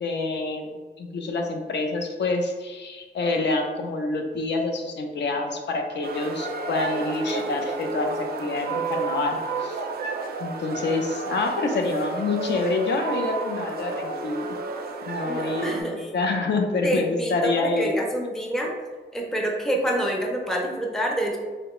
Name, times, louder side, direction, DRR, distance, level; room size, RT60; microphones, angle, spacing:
voice 1, 0.0-0.7 1.0-9.8 10.4-14.6 15.0-17.9, left 3 dB, 70° left, 3 dB, 0.5 m, -27 dB
sound 1, 6.0-15.8, right 3 dB, 55° right, 0.4 m, -31 dB
voice 2, 15.2-16.1 16.8-18.7 19.1-21.4, right 1 dB, ahead, 0 dB, 0.4 m, -27 dB
3.8 x 2.1 x 2.9 m, 1.3 s
wide cardioid pair, 135°, 19 cm